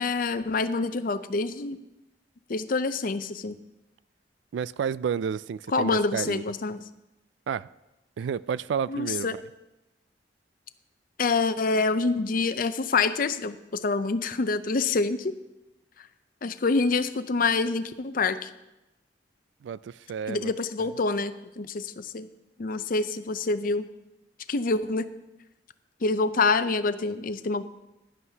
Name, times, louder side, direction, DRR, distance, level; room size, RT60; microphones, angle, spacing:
voice 1, 0.0-1.8 2.5-3.6 5.7-6.8 8.9-9.4 11.2-15.4 16.0-16.1 16.4-18.5 20.3-22.3 22.6-23.9 24.5-25.1 26.0-27.6, left 3 dB, 50° left, 0.6 m, -26 dB
voice 2, 4.5-6.4 7.5-7.7 8.2-9.4 19.6-20.5 20.8-20.9, right 7 dB, 85° right, 0.3 m, -31 dB
16.5 x 11.5 x 2.8 m
head